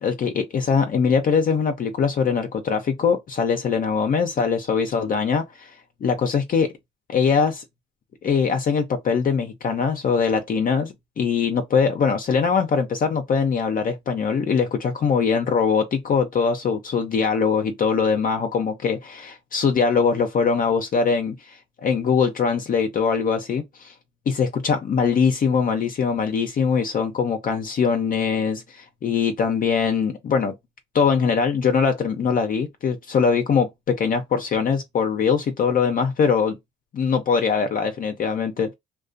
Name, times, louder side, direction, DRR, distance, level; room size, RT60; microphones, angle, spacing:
voice 1, 0.0-6.7 7.1-7.6 8.2-23.9 24.3-30.5 30.9-36.6 36.9-38.7, left 6 dB, 45° left, 0.5 m, -22 dB
2.3 x 2.2 x 2.4 m
cardioid pair, 90°, 20 cm